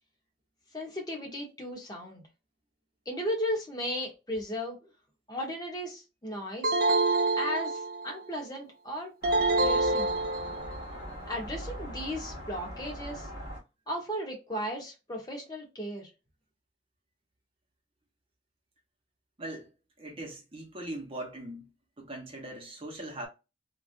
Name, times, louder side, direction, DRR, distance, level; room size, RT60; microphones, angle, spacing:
voice 1, 0.7-2.2 3.1-4.8 5.3-6.8 7.4-9.1 9.6-10.1 11.3-13.3 13.9-16.1, equal, 20° left, 1.0 m, -35 dB
sound 1, 6.6-8.2 9.2-10.8, right 2 dB, 50° right, 0.5 m, -26 dB
sound 2, 9.2-13.6, equal, 50° left, 1.5 m, -41 dB
voice 2, 19.4-19.7 20.0-21.7 22.0-23.3, right 1 dB, 30° right, 0.9 m, -40 dB
3.2 x 2.5 x 2.5 m
head